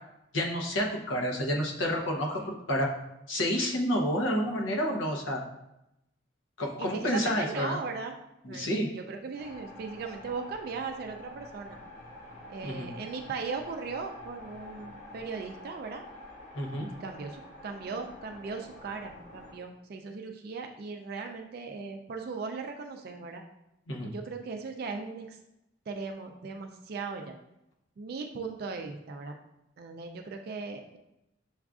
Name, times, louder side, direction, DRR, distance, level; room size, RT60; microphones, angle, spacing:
voice 1, 0.3-2.9 3.3-5.4 6.6-7.8 8.4-8.9 12.6-12.9 16.5-16.9 23.9-24.1, equal, 90° left, 0 dB, 0.8 m, -29 dB
voice 2, 6.8-8.2 8.5-8.7 8.9-11.8 12.5-16.0 17.0-23.4 24.0-25.4 25.9-27.4 28.0-29.4 29.8-31.0, right 4 dB, 55° right, 3 dB, 0.3 m, -38 dB
sound 1, 9.4-19.5, left 1 dB, 35° left, 0.7 m, -48 dB
7.0 x 2.4 x 2.4 m, 0.87 s
head